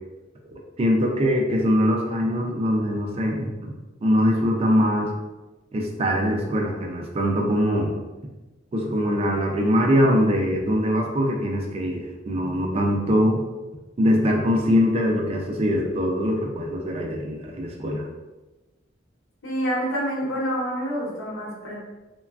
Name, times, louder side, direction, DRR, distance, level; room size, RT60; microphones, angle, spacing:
voice 1, 0.8-3.7 4.0-5.1 5.7-7.9 8.7-13.4 14.0-18.1, equal, 30° right, 1 dB, 0.3 m, -22 dB
voice 2, 19.4-21.8, equal, 90° left, -4 dB, 0.9 m, -27 dB
3.2 x 2.2 x 2.3 m, 1.1 s
head